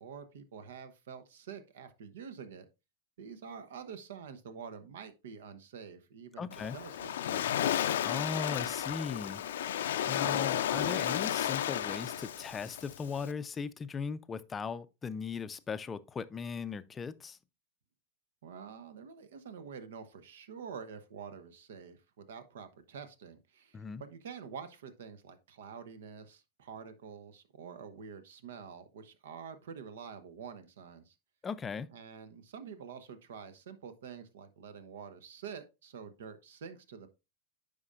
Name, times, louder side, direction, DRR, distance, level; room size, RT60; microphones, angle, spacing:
voice 1, 0.0-2.7 3.2-6.5 6.7-7.6 18.4-31.2 31.9-37.1, right 6 dB, 70° right, 1.0 m, -47 dB
voice 2, 6.4-6.8 8.0-9.8 10.1-17.4 23.7-24.0 31.4-31.9, left 5 dB, 20° left, 0.5 m, -38 dB
Waves surf, 6.5-13.3, left 10 dB, 70° left, 0.5 m, -33 dB
9.6 x 5.2 x 2.5 m
hypercardioid pair, 100°, 0 cm